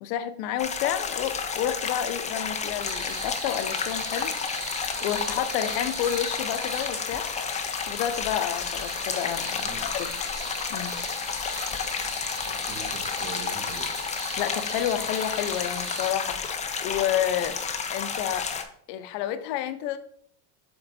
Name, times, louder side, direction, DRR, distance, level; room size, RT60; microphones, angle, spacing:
voice 1, 0.0-4.3 5.0-7.3 7.9-10.1 10.7-10.9 14.4-16.6 16.8-17.6 17.9-18.5 18.9-20.0, left 10 dB, 75° left, 10 dB, 0.8 m, -30 dB
sound 1, 0.6-18.6, left 6 dB, 15° left, 0.4 m, -31 dB
sound 2, 2.8-16.1, right 4 dB, 50° right, 2.3 m, -40 dB
voice 2, 9.4-9.9 12.4-14.0, right 3 dB, 30° right, -4 dB, 1.6 m, -42 dB
6.7 x 3.8 x 4.1 m, 0.63 s
supercardioid pair, 125°, 49 cm